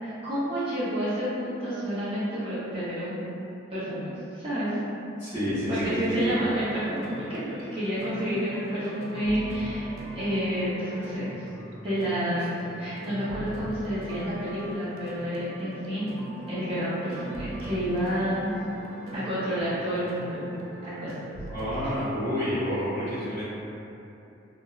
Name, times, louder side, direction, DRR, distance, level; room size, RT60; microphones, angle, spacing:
voice 1, 0.0-3.2 3.7-4.1 4.3-4.8 5.7-11.3 11.8-12.5 12.8-16.1 16.5-18.5 19.1-20.4 20.8-21.1, equal, 30° right, -13 dB, 0.6 m, -29 dB
voice 2, 5.2-6.3 12.4-12.5 21.5-23.4, equal, 20° left, -21 dB, 1.1 m, -29 dB
sound 1, 5.8-21.7, right 1 dB, 85° right, 0.4 m, -41 dB
2.9 x 2.1 x 2.3 m, 2.8 s
head